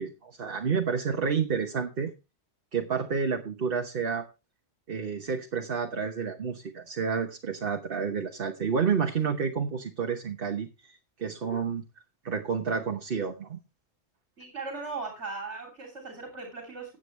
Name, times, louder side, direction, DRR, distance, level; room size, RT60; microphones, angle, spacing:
voice 1, 0.0-2.1 2.7-4.3 4.9-11.8 12.2-13.6, right 6 dB, 55° right, 4 dB, 1.3 m, -30 dB
voice 2, 14.4-17.0, right 3 dB, 90° right, 2 dB, 3.4 m, -38 dB
14.5 x 8.9 x 3.3 m, 0.27 s
omnidirectional pair, 1.1 m